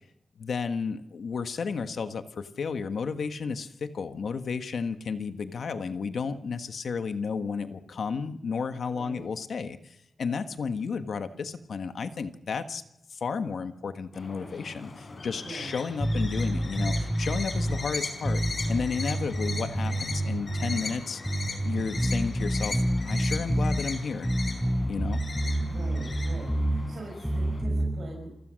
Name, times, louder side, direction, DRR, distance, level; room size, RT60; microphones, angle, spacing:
voice 1, 0.4-12.8 13.1-18.4 18.7-21.2 21.6-24.3 24.9-25.2, left 5 dB, 85° left, 8 dB, 1.4 m, -32 dB
voice 2, 8.9-9.3 15.4-15.7 25.6-28.3, right 3 dB, 70° right, 0 dB, 6.1 m, -43 dB
sound 1, 14.1-27.6, left 3 dB, 50° left, 4.8 m, -39 dB
sound 2, 16.0-17.8 18.2-20.8 21.2-23.8 24.2-26.8 27.2-27.9, right 1 dB, 5° right, 5.7 m, -28 dB
29.0 x 15.5 x 6.4 m, 0.87 s
wide cardioid pair, 130°, 0 cm